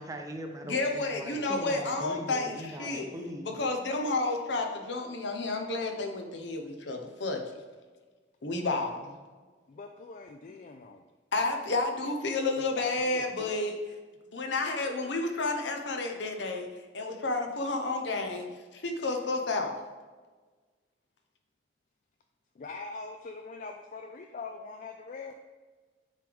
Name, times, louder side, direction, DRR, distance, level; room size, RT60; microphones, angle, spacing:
voice 1, 0.0-3.6, equal, 20° right, 3 dB, 0.6 m, -40 dB
voice 2, 0.6-3.1 3.4-7.5 8.4-9.1 11.3-13.8 14.3-16.7 16.9-19.7, left 2 dB, 70° left, 3 dB, 0.8 m, -31 dB
voice 3, 9.7-11.0 12.7-13.8 22.6-25.3, left 4 dB, 45° left, 5 dB, 0.3 m, -43 dB
9.1 x 3.4 x 3.5 m, 1.4 s
head